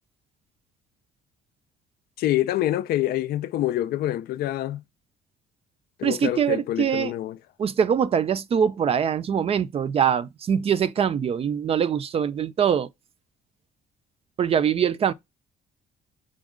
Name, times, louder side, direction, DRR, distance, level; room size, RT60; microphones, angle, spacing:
voice 1, 2.2-4.8 6.0-7.4, left 13 dB, 65° left, 0.4 m, -26 dB
voice 2, 6.0-7.1 7.6-12.9 14.4-15.1, right 8 dB, 35° right, 0.4 m, -23 dB
6.1 x 2.3 x 3.6 m
cardioid pair, 110°, 17 cm